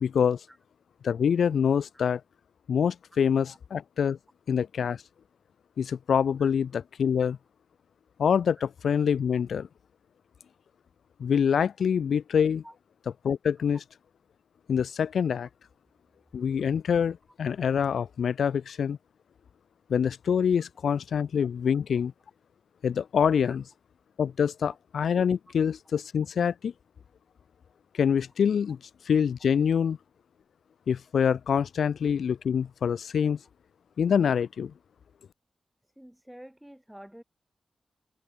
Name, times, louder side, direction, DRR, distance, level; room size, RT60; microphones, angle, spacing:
voice 1, 0.0-0.4 1.0-2.2 2.7-4.2 4.5-5.0 5.8-7.4 8.2-9.7 11.2-12.6 13.2-13.8 14.7-15.5 16.3-19.0 19.9-22.1 22.8-23.6 24.2-26.7 27.9-28.8 29.0-30.0 30.9-33.4 34.0-34.7, left 7 dB, 75° left, 0.4 m, -25 dB
voice 2, 36.0-37.2, equal, 5° right, 5.3 m, -48 dB
wide cardioid pair, 135°, 0 cm